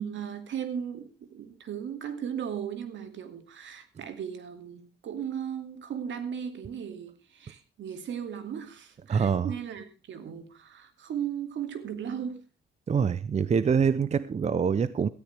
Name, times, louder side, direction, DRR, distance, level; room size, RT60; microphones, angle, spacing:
voice 1, 0.0-12.4, right 8 dB, 70° right, 2.4 m, -36 dB
voice 2, 9.1-9.5 12.9-15.1, right 6 dB, 35° right, 0.6 m, -25 dB
17.5 x 13.5 x 3.4 m
cardioid pair, 90°, 20 cm